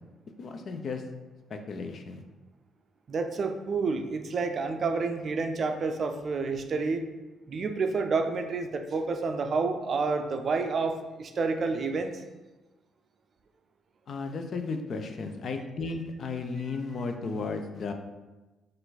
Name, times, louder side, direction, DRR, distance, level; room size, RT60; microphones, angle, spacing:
voice 1, 0.4-1.0 1.5-2.2 14.1-17.9, left 4 dB, 55° left, 5 dB, 0.5 m, -34 dB
voice 2, 3.1-7.0 7.5-12.1 16.6-16.7, right 4 dB, 50° right, 6 dB, 0.4 m, -29 dB
4.3 x 2.5 x 4.0 m, 1.1 s
cardioid pair, 90°, 0 cm